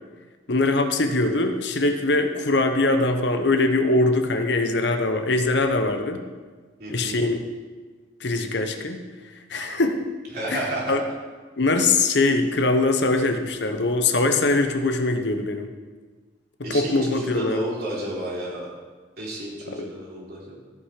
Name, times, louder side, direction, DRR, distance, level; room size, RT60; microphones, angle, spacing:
voice 1, 0.5-6.2 6.9-7.4 8.2-9.0 9.5-10.0 10.5-11.0 11.6-15.7 16.6-17.7 19.7-19.9, left 2 dB, 70° left, 6 dB, 0.9 m, -22 dB
voice 2, 6.8-7.2 10.3-11.0 16.6-18.7 19.2-20.6, right 1 dB, 60° right, -5 dB, 3.4 m, -32 dB
15.0 x 5.7 x 4.9 m, 1.4 s
head